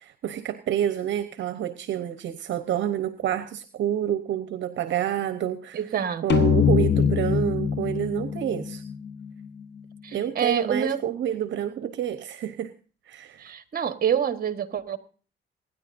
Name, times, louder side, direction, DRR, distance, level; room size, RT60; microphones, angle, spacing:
voice 1, 0.0-5.8 6.2-8.8 10.1-12.7 13.1-13.4, right 10 dB, 70° right, 0.9 m, -28 dB
voice 2, 5.7-6.2 10.0-11.0 13.4-15.0, right 8 dB, 50° right, 1.4 m, -27 dB
sound 1, 6.3-9.8, left 7 dB, 60° left, 1.1 m, -24 dB
25.5 x 10.5 x 2.6 m
cardioid pair, 90°, 20 cm